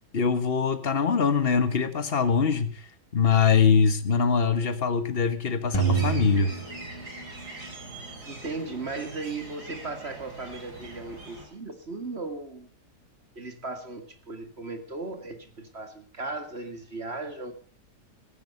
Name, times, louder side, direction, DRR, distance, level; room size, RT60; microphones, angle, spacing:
voice 1, 0.1-2.8 3.1-6.5, left 6 dB, 35° left, 1.6 m, -23 dB
sound 1, 5.7-7.9, right 7 dB, 15° left, 2.7 m, -28 dB
sound 2, 5.8-11.5, right 2 dB, 65° right, 4.7 m, -43 dB
voice 2, 8.2-12.7 13.4-17.5, right 3 dB, 40° right, 2.2 m, -36 dB
16.5 x 15.0 x 5.5 m
omnidirectional pair, 1.8 m